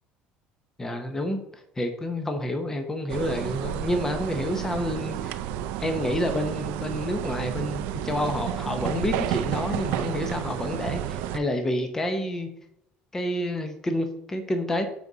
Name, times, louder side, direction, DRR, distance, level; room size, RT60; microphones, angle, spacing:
voice 1, 0.8-1.4 1.8-5.3 5.8-12.5 13.1-14.8, left 1 dB, 15° left, 6 dB, 0.8 m, -29 dB
sound 1, 3.1-11.4, right 11 dB, 85° right, 0.5 m, -31 dB
8.0 x 4.8 x 3.9 m, 0.79 s
cardioid pair, 135°, 3 cm